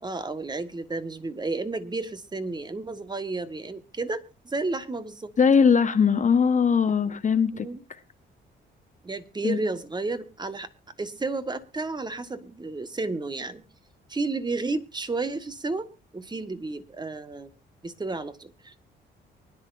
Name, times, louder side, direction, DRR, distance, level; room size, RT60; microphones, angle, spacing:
voice 1, 0.0-5.3 7.5-7.8 9.0-10.7 11.0-13.6 14.1-17.5 17.8-18.7, right 3 dB, 20° right, 1.4 m, -32 dB
voice 2, 5.4-7.7 9.4-9.6, left 6 dB, 40° left, 1.1 m, -20 dB
24.0 x 10.5 x 2.6 m
cardioid pair, 90°, 20 cm